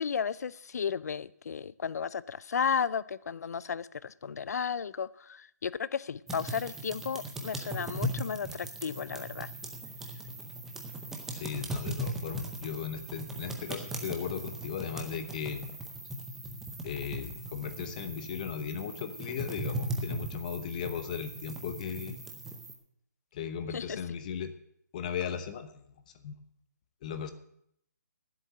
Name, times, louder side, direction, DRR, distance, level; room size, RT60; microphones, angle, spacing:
voice 1, 0.0-9.5 23.7-24.0, left 6 dB, 65° left, 18 dB, 0.5 m, -34 dB
sound 1, 6.3-22.7, right 1 dB, 5° right, 0.7 m, -39 dB
voice 2, 11.3-15.6 16.8-22.2 23.3-24.5 24.9-25.8 26.2-26.3 27.0-27.3, left 7 dB, 25° left, 10 dB, 0.8 m, -37 dB
10.0 x 7.9 x 9.1 m, 0.70 s
hypercardioid pair, 165°, 9 cm